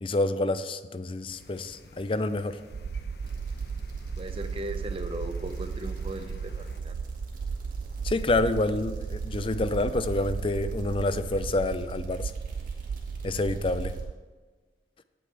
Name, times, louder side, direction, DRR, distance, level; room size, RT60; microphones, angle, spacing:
voice 1, 0.0-2.6 8.0-12.3 13.2-14.0, left 2 dB, 30° left, 12 dB, 0.5 m, -28 dB
sound 1, 1.3-6.8, left 2 dB, 65° left, 0.9 m, -50 dB
sound 2, 2.7-14.1, right 5 dB, 80° right, 0.3 m, -35 dB
sound 3, 3.2-14.0, right 1 dB, 50° right, 2.1 m, -50 dB
voice 2, 4.2-7.0, right 1 dB, 30° right, 8 dB, 0.8 m, -38 dB
17.5 x 8.7 x 3.4 m, 1.4 s
head